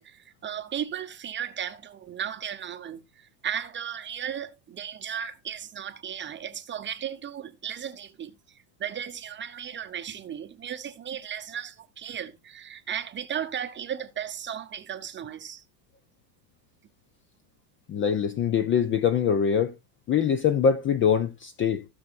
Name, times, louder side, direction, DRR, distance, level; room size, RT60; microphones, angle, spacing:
voice 1, 0.0-8.3 8.8-15.6, right 9 dB, 20° right, 0.8 m, -35 dB
voice 2, 17.9-19.7 20.1-21.9, left 7 dB, 25° left, 0.5 m, -23 dB
16.0 x 6.2 x 2.5 m
supercardioid pair, 130°, 50 cm